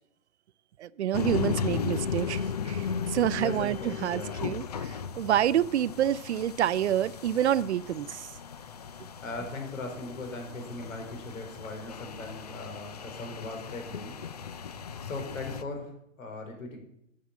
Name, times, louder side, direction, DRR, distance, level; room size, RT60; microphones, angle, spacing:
voice 1, 0.8-8.3, right 11 dB, 55° right, 19 dB, 0.5 m, -28 dB
sound 1, 1.1-15.6, left 6 dB, 30° left, 0.4 m, -36 dB
voice 2, 3.3-4.5 9.2-14.2 15.0-16.8, left 3 dB, 75° left, 4 dB, 4.5 m, -39 dB
10.5 x 7.6 x 8.3 m, 0.75 s
hypercardioid pair, 155°, 40 cm